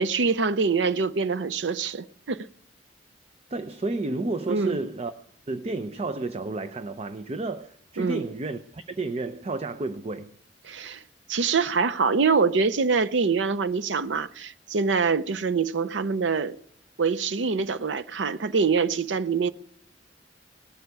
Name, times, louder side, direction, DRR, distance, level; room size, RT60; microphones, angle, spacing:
voice 1, 0.0-2.5 4.5-4.8 8.0-8.2 10.6-11.0 11.3-16.6 17.0-19.5, right 5 dB, 85° right, 0.5 m, -25 dB
voice 2, 3.5-5.1 5.5-10.3, right 3 dB, 35° right, 0.6 m, -31 dB
18.0 x 7.9 x 9.6 m
head